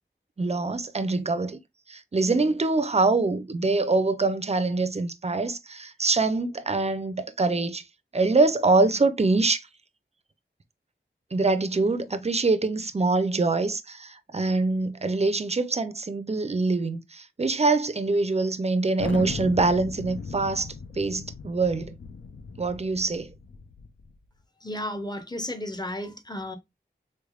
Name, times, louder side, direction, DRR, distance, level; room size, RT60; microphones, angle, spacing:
voice 1, 0.4-1.6 1.9-7.8 8.1-9.7 11.3-22.0 22.6-23.3, right 3 dB, 35° right, 0.4 m, -24 dB
Thunder, 19.0-24.2, left 5 dB, 75° left, 0.5 m, -38 dB
voice 2, 24.6-26.6, left 1 dB, 20° left, 0.7 m, -33 dB
3.3 x 3.3 x 2.3 m
wide cardioid pair, 50°, 20 cm